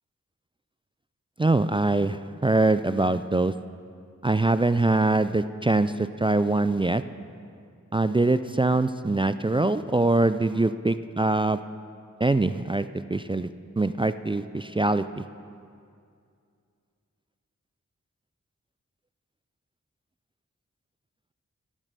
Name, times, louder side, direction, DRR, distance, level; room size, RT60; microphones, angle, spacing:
voice 1, 1.4-3.5 4.2-7.0 7.9-11.6 12.2-13.5 13.8-15.2, right 2 dB, 15° right, 12 dB, 0.3 m, -23 dB
16.5 x 7.4 x 6.7 m, 2.3 s
wide cardioid pair, 55°, 31 cm